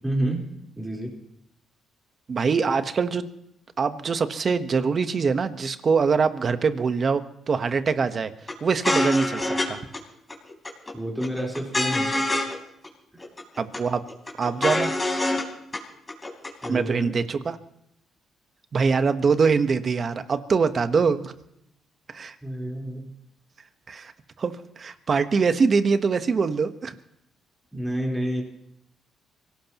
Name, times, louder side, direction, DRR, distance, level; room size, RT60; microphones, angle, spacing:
voice 1, 0.0-0.5 0.8-1.1 10.9-12.3 16.6-17.1 22.4-23.1 27.7-28.4, right 1 dB, 5° right, -2 dB, 4.0 m, -29 dB
voice 2, 2.3-3.3 3.8-8.3 8.6-9.8 13.6-14.0 14.4-14.9 16.7-17.6 18.7-21.3 22.1-22.3 23.9-24.1 24.4-26.9, right 5 dB, 45° right, 10 dB, 1.1 m, -23 dB
sound 1, 8.5-8.6 8.8-9.7 9.9-10.0 10.3-10.9 11.2-12.6 12.8-12.9 13.2-13.8 14.1-15.4 15.7-15.8 16.1-16.7, left 2 dB, 20° left, 3.9 m, -25 dB
24.5 x 17.5 x 3.0 m, 0.77 s
cardioid pair, 90°, 0 cm